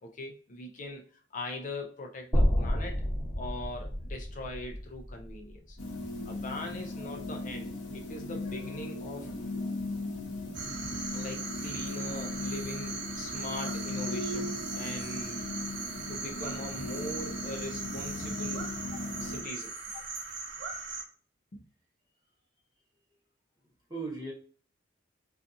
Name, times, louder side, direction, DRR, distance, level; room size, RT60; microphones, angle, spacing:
voice 1, 0.0-1.0 1.3-3.0 3.3-5.8 6.3-9.3 10.2-10.3 11.1-15.4 16.1-18.9 19.2-19.7 21.5-21.6, left 1 dB, 40° left, 2 dB, 0.4 m, -41 dB
sound 1, 2.3-6.5, equal, 5° left, 1.0 m, -30 dB
sound 2, 5.8-19.4, left 2 dB, 90° left, 0.7 m, -37 dB
sound 3, 10.5-21.0, right 4 dB, 60° right, 0.6 m, -39 dB
voice 2, 23.6-24.3, right 3 dB, 20° right, -3 dB, 0.9 m, -40 dB
2.6 x 2.4 x 2.5 m, 0.43 s
head